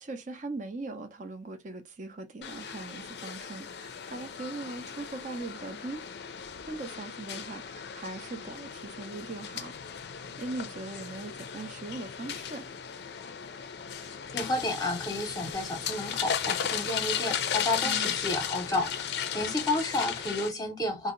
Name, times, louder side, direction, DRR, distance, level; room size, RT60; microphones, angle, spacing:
voice 1, 0.0-6.0 6.7-9.7 10.4-12.6 17.8-18.1, right 3 dB, 40° right, 0.6 m, -40 dB
sound 1, 2.4-20.5, left 8 dB, 60° left, 0.4 m, -36 dB
voice 2, 14.3-21.1, left 2 dB, 20° left, 0.7 m, -31 dB
2.7 x 2.0 x 3.7 m
head